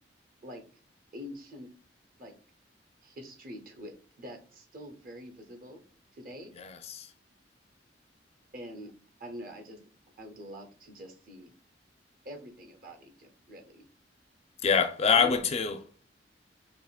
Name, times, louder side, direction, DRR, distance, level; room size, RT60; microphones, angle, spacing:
voice 1, 1.1-1.7 2.2-2.4 3.0-3.9 4.2-5.8 6.1-6.5 8.5-8.9 9.2-9.8 10.2-11.5 12.2-13.9 15.1-15.4, equal, 50° right, 0.7 m, -45 dB
voice 2, 6.5-7.1 14.6-16.0, left 6 dB, 35° left, 0.4 m, -26 dB
4.9 x 2.8 x 2.3 m
head